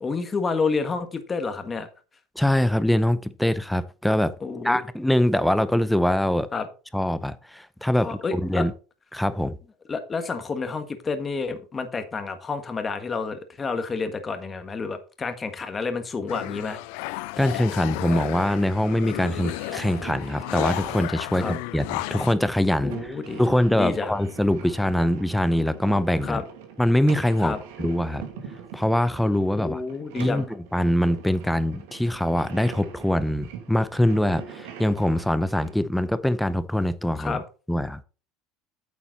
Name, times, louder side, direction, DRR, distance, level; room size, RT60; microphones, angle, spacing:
voice 1, 0.0-1.9 4.4-4.8 6.5-6.7 8.0-8.7 9.9-16.8 21.3-21.6 22.8-23.4 23.7-24.2 26.2-26.4 27.4-27.6 29.6-30.4 37.1-37.4, left 4 dB, 20° left, 1.4 m, -29 dB
voice 2, 2.4-4.3 4.6-6.5 6.9-8.7 9.1-9.6 17.4-23.1 23.4-26.4 26.8-28.2 28.7-29.8 30.2-38.0, left 1 dB, 5° left, 0.7 m, -23 dB
sound 1, 16.3-22.4, left 21 dB, 75° left, 0.3 m, -33 dB
sound 2, 18.2-35.7, right 7 dB, 85° right, 2.4 m, -43 dB
9.0 x 7.2 x 4.0 m
supercardioid pair, 130°, 0 cm